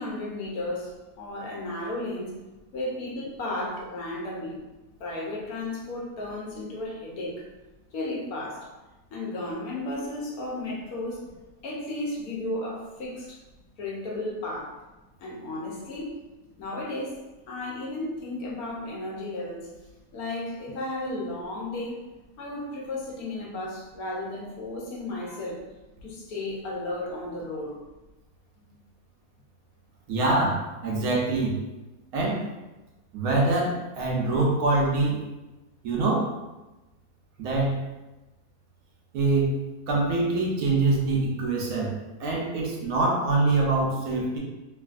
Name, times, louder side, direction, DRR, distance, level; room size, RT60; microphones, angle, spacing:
voice 1, 0.0-2.4 2.7-4.6 5.0-7.5 7.9-8.7 9.1-11.3 11.6-13.4 13.8-14.7 15.2-16.2 16.6-19.7 20.1-22.0 22.4-25.6 26.0-27.8, left 2 dB, 70° left, -3 dB, 1.2 m, -34 dB
voice 2, 30.1-31.6 32.1-32.4 33.1-35.3 35.8-36.3 37.4-37.8 39.1-39.6 39.9-44.4, right 2 dB, 75° right, -2 dB, 1.1 m, -24 dB
3.1 x 2.6 x 2.4 m, 1.1 s
omnidirectional pair, 1.6 m